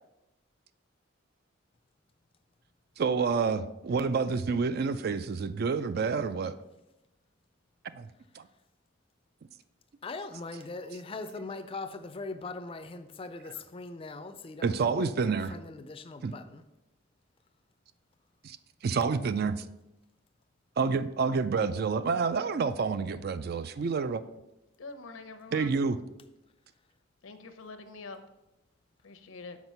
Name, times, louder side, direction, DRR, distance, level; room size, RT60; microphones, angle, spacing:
voice 1, 3.0-6.5 7.9-8.1 8.4-8.5 14.6-15.5 16.2-16.3 18.4-18.6 18.8-19.6 20.8-24.2 25.5-26.0, right 5 dB, 50° right, 0.3 m, -28 dB
voice 2, 10.0-16.6, left 3 dB, 25° left, 0.4 m, -41 dB
voice 3, 24.8-25.8 27.2-28.2 29.0-29.6, left 3 dB, 85° left, 0.7 m, -45 dB
6.1 x 4.9 x 5.4 m
head